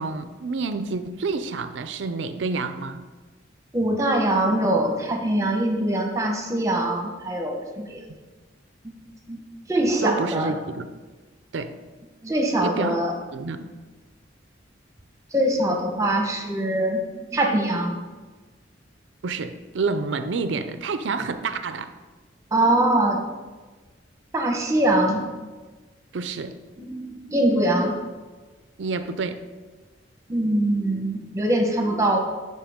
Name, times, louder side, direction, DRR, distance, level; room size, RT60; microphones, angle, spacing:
voice 1, 0.0-3.1 10.0-10.9 11.5-11.7 12.6-13.0 13.3-13.7 19.2-21.9 26.1-26.6 28.8-29.4, right 4 dB, 75° right, 10 dB, 0.5 m, -28 dB
voice 2, 3.7-8.0 9.3-9.4 9.7-10.5 12.2-13.1 15.3-17.0 17.3-17.9 22.5-23.2 24.3-25.2 26.8-28.0 30.3-32.2, right 1 dB, 15° right, 2 dB, 1.0 m, -23 dB
11.5 x 4.6 x 3.6 m, 1.3 s
head